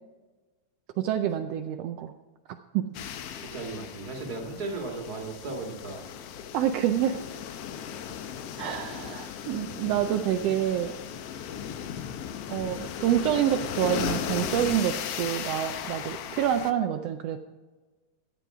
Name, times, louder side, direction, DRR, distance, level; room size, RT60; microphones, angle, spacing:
voice 1, 1.0-2.1 2.7-2.9 6.5-7.2 8.6-10.9 12.5-17.4, right 10 dB, 80° right, 6 dB, 1.4 m, -27 dB
sound 1, 2.9-16.7, left 8 dB, 70° left, 1.5 m, -36 dB
voice 2, 3.5-6.0, right 3 dB, 35° right, 1 dB, 2.1 m, -36 dB
14.0 x 9.3 x 4.8 m, 1.3 s
omnidirectional pair, 3.4 m